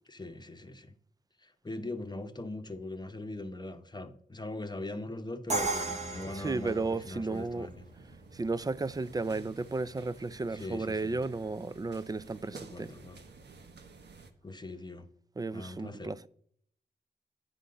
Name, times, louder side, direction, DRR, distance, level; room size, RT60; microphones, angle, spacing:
voice 1, 0.1-0.9 1.4-7.9 10.5-11.2 12.5-13.2 14.4-15.1 15.5-16.1, left 2 dB, 25° left, 0.8 m, -41 dB
Crash cymbal, 5.5-7.4, right 3 dB, 40° right, 1.1 m, -34 dB
sound 1, 6.0-14.3, right 4 dB, 85° right, 1.0 m, -52 dB
voice 2, 6.3-7.7 8.3-12.9 15.4-16.3, right 3 dB, 20° right, 0.4 m, -34 dB
9.7 x 3.9 x 6.6 m
wide cardioid pair, 85°, 17 cm